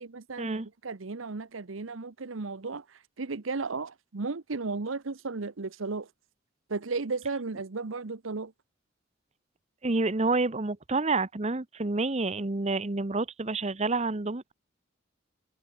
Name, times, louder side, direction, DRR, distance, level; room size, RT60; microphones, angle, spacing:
voice 1, 0.0-2.8 3.2-6.1 6.7-8.5, right 4 dB, 90° right, 0.9 m, -34 dB
voice 2, 9.8-14.5, right 3 dB, 35° right, 1.0 m, -28 dB
head